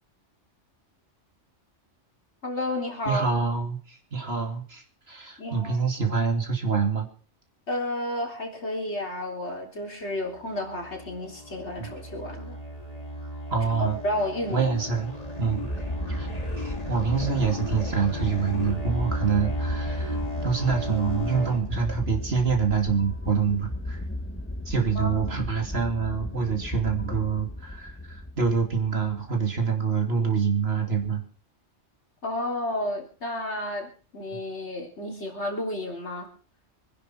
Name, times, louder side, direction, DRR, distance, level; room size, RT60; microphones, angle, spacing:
voice 1, 2.4-3.3 5.4-5.9 7.7-12.6 13.8-14.7 25.0-25.2 32.2-36.3, left 1 dB, 65° left, 1 dB, 3.8 m, -31 dB
voice 2, 3.0-7.1 11.8-11.9 13.5-14.0 14.5-15.7 16.1-16.3 16.6-20.2 20.4-24.0 24.6-31.2, right 5 dB, 55° right, 3 dB, 2.9 m, -26 dB
sound 1, 10.2-21.6, equal, 30° left, 3.2 m, -34 dB
sound 2, 15.1-29.3, left 1 dB, 10° left, 1.4 m, -36 dB
24.5 x 10.5 x 4.5 m, 0.40 s
omnidirectional pair, 1.3 m